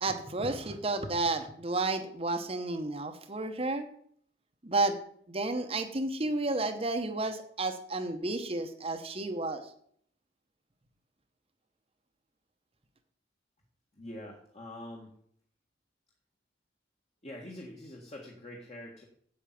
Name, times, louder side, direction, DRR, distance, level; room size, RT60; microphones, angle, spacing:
voice 1, 0.0-3.8 4.6-5.0 5.3-9.6, right 2 dB, 30° right, 5 dB, 1.0 m, -31 dB
voice 2, 13.9-15.1 17.2-19.0, left 1 dB, 35° left, 0 dB, 1.7 m, -45 dB
8.5 x 8.3 x 7.5 m, 0.63 s
head